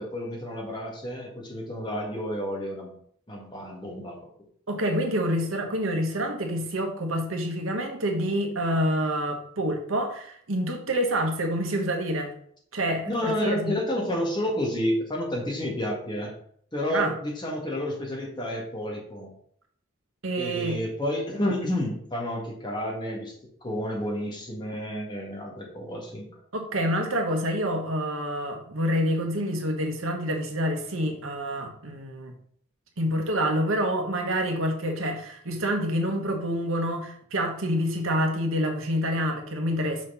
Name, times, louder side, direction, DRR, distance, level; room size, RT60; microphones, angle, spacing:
voice 1, 0.0-2.9 3.3-4.2 13.1-16.3 16.7-19.3 20.4-23.3 23.6-26.3, left 1 dB, 20° left, -2 dB, 1.9 m, -30 dB
voice 2, 4.7-12.3 12.7-13.7 16.9-17.1 20.2-20.8 26.5-32.3 33.0-40.0, equal, 90° right, 3 dB, 1.4 m, -27 dB
6.2 x 4.3 x 5.7 m, 0.63 s
head